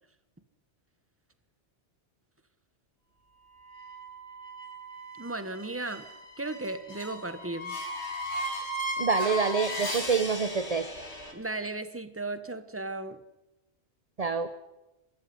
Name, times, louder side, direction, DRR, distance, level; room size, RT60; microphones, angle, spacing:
sound 1, 3.6-11.3, equal, 70° left, 3.4 m, -36 dB
voice 1, 5.2-6.0 6.4-7.8 11.3-13.2, right 2 dB, 10° right, 11 dB, 1.4 m, -35 dB
voice 2, 9.0-10.9 14.2-14.5, right 5 dB, 35° right, 11 dB, 1.0 m, -27 dB
25.0 x 13.5 x 9.7 m, 0.99 s
omnidirectional pair, 1.2 m